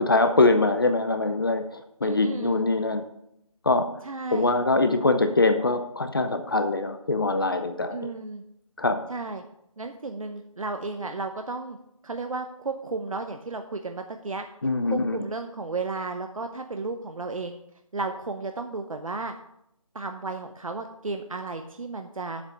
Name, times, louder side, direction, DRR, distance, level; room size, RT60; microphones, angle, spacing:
voice 1, 0.0-3.0 3.7-3.9 4.3-8.1 8.8-9.0 14.6-15.2, left 2 dB, 40° left, 8 dB, 0.7 m, -23 dB
voice 2, 2.0-2.6 4.0-4.5 7.9-8.4 9.1-9.4 9.8-11.8 12.0-14.4 14.9-17.6 17.9-19.3 19.9-22.4, right 3 dB, 70° right, 6 dB, 0.8 m, -33 dB
7.2 x 6.0 x 6.6 m, 0.78 s
figure-of-eight pair, 170°, 18 cm